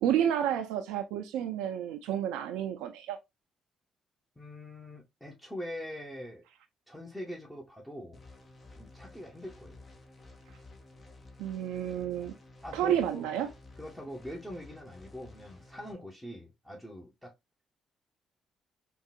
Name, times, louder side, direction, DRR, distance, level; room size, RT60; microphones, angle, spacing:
voice 1, 0.0-3.2 11.4-12.3 12.7-13.5, right 10 dB, 80° right, 0.3 m, -30 dB
voice 2, 4.4-6.4 6.9-8.2 8.8-9.8 12.6-13.3 13.8-17.3, equal, 10° left, 0.9 m, -43 dB
sound 1, 8.1-15.9, left 2 dB, 40° left, 0.9 m, -53 dB
3.7 x 2.3 x 2.4 m
supercardioid pair, 60°, 0 cm